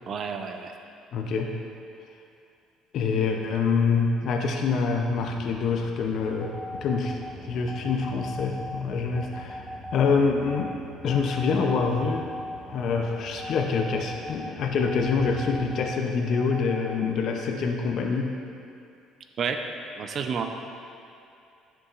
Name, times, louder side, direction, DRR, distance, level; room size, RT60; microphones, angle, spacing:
voice 1, 0.1-0.7 19.4-19.6 20.0-20.4, right 6 dB, 45° right, 5 dB, 0.6 m, -30 dB
voice 2, 1.1-1.5 2.9-10.7 11.0-12.3 12.7-18.4, left 5 dB, 60° left, 2 dB, 0.6 m, -26 dB
sound 1, 5.0-15.8, equal, 20° right, 1.3 m, -45 dB
sound 2, 6.4-17.1, left 1 dB, 5° left, 0.5 m, -40 dB
10.5 x 7.0 x 2.5 m, 2.6 s
cardioid pair, 110°, 0 cm